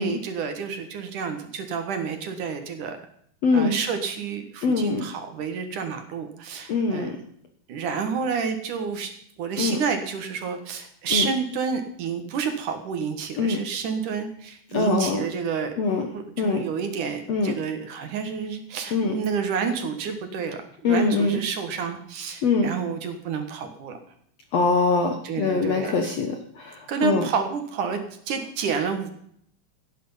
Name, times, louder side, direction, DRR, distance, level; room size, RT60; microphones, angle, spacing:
voice 1, 0.0-3.0 3.5-7.1 7.7-9.1 9.4-15.7 16.1-24.0 25.2-26.1 26.9-28.0 28.3-29.1, right 6 dB, 60° right, 7 dB, 2.7 m, -29 dB
voice 2, 3.4-3.8 4.6-5.0 6.7-7.2 9.6-9.8 11.1-11.3 13.4-13.6 14.7-15.2 15.8-16.1 16.4-16.6 17.3-17.6 18.9-19.2 20.8-21.4 22.4-22.7 24.5-27.3, left 3 dB, 60° left, 4 dB, 1.8 m, -23 dB
16.5 x 10.5 x 5.6 m, 0.66 s
omnidirectional pair, 4.4 m